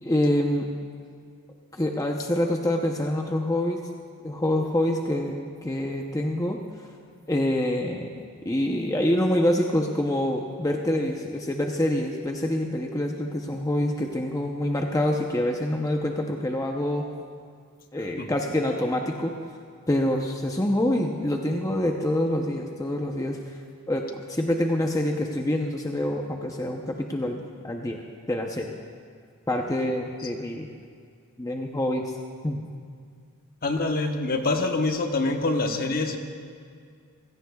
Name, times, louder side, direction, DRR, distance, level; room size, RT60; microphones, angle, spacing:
voice 1, 0.0-0.7 1.7-3.8 4.2-6.6 7.3-17.1 17.9-19.3 19.9-23.4 23.9-28.0 28.3-28.7 29.5-30.7 31.4-32.1 32.4-32.6, left 1 dB, 15° left, 1 dB, 0.7 m, -26 dB
voice 2, 33.6-36.2, left 2 dB, 40° left, 4 dB, 1.0 m, -25 dB
27.5 x 16.5 x 2.3 m, 2.2 s
head